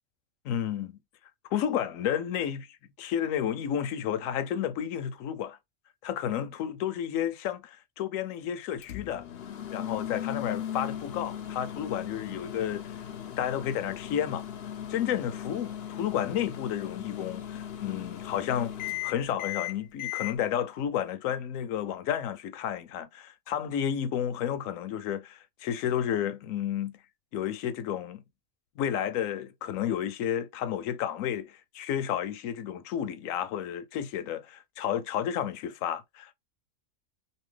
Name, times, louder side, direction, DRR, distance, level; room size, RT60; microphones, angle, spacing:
voice 1, 0.4-1.0 1.5-5.6 6.0-9.3 9.7-14.4 14.9-18.7 19.0-27.0 27.3-28.2 28.8-36.3, left 9 dB, 80° left, 1.0 m, -31 dB
Microwave oven, 8.8-20.3, left 11 dB, 60° left, 0.7 m, -37 dB
2.8 x 2.7 x 3.2 m
omnidirectional pair, 1.4 m